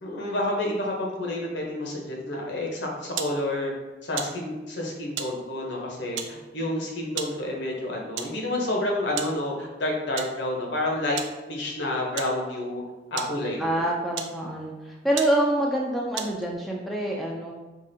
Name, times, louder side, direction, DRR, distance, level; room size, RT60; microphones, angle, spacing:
voice 1, 0.0-3.7 4.0-11.2 11.5-12.8 13.1-13.8, left 1 dB, 70° left, -1 dB, 0.8 m, -29 dB
sound 1, 3.2-3.4 4.2-4.4 5.2-5.4 6.2-6.4 7.2-7.4 8.2-8.4 9.2-9.4 10.2-10.4 11.2-11.4 12.2-12.4 13.2-13.4 14.1-14.4 14.8-14.9 15.2-15.4 16.2-16.5, right 8 dB, 80° right, 0.4 m, -33 dB
voice 2, 13.6-17.5, right 1 dB, ahead, -3 dB, 0.3 m, -26 dB
4.8 x 2.5 x 2.7 m, 1.1 s
head